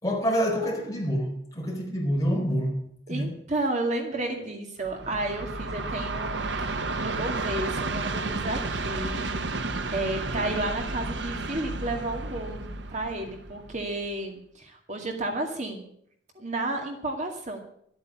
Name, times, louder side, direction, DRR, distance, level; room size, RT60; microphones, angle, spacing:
voice 1, 0.0-2.7 3.1-3.3, equal, 20° left, 4.2 m, -27 dB
voice 2, 3.1-9.3 9.9-15.9 16.4-17.6, right 2 dB, 40° right, 2.1 m, -32 dB
Train, 4.8-14.1, right 3 dB, 85° right, 1.0 m, -32 dB
13.5 x 8.7 x 8.5 m
head